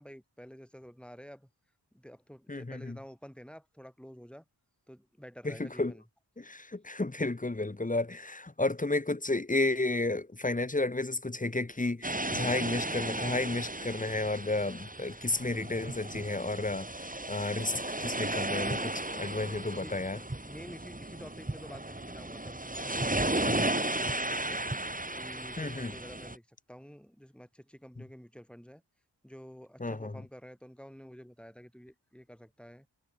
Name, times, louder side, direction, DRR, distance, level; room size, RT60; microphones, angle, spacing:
voice 1, 0.0-1.5 1.9-4.4 4.9-6.0 17.9-18.2 19.7-20.0 20.4-24.6 25.1-28.8 29.2-32.9, equal, ahead, 6.6 m, -50 dB
voice 2, 2.5-3.0 5.4-5.9 6.4-20.2 23.4-23.5 25.6-25.9 29.8-30.1, left 2 dB, 20° left, 1.1 m, -32 dB
sound 1, 12.0-26.4, right 1 dB, 20° right, 3.8 m, -35 dB
cardioid pair, 50°, 43 cm